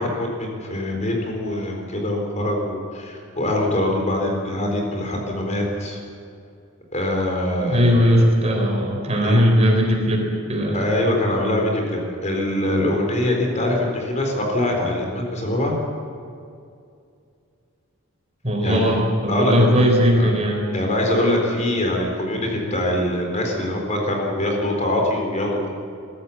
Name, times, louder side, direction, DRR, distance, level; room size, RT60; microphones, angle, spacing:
voice 1, 0.0-6.0 6.9-8.2 9.2-9.4 10.7-15.8 18.6-18.9 19.3-19.7 20.2-20.3 20.7-25.7, left 1 dB, 35° left, 1 dB, 4.1 m, -23 dB
voice 2, 7.6-10.8 18.4-20.6, equal, 30° right, 1 dB, 3.7 m, -18 dB
22.0 x 13.5 x 8.6 m, 2.4 s
head